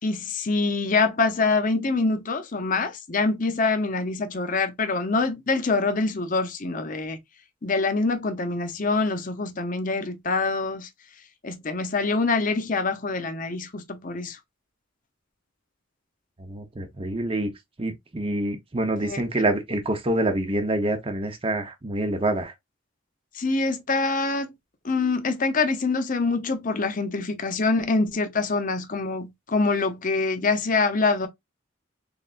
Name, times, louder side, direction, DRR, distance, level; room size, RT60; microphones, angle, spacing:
voice 1, 0.0-7.2 7.6-10.9 11.4-14.4 19.1-19.2 23.3-24.5 24.8-31.3, left 3 dB, 40° left, 0.7 m, -25 dB
voice 2, 16.4-17.5 17.8-22.5, right 1 dB, 30° right, 0.7 m, -26 dB
3.7 x 3.4 x 2.4 m
head